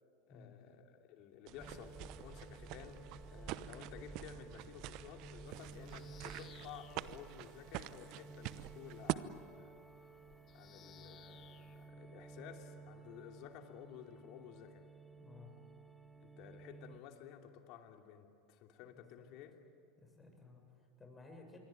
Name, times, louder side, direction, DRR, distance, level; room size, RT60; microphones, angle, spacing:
voice 1, 0.3-9.7 10.5-14.9 16.2-19.5, left 9 dB, 55° left, 4 dB, 2.9 m, -54 dB
sound 1, 1.5-9.2, right 18 dB, 55° right, 0.8 m, -46 dB
sound 2, 1.6-17.0, right 3 dB, 5° right, 1.1 m, -54 dB
Bird vocalization bird call bird song, 5.5-11.9, left 10 dB, 40° left, 1.2 m, -64 dB
voice 2, 15.2-15.5 18.9-19.3 20.0-21.6, left 3 dB, 15° left, 3 dB, 7.5 m, -57 dB
26.5 x 23.0 x 9.6 m, 2.4 s
hypercardioid pair, 85°, 0 cm